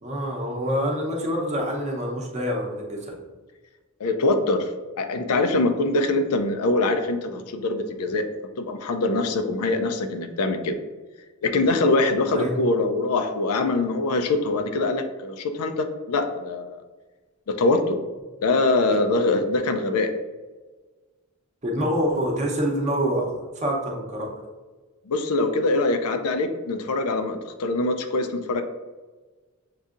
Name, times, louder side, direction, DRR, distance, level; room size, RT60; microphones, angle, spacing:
voice 1, 0.0-3.2 12.3-12.5 21.6-24.3, equal, 30° right, -1 dB, 0.7 m, -26 dB
voice 2, 4.0-4.7 5.0-8.3 8.6-10.8 11.4-16.8 17.5-18.0 18.4-20.1 25.1-28.6, left 2 dB, 85° left, 7 dB, 0.5 m, -23 dB
6.6 x 2.7 x 2.4 m, 1.3 s
head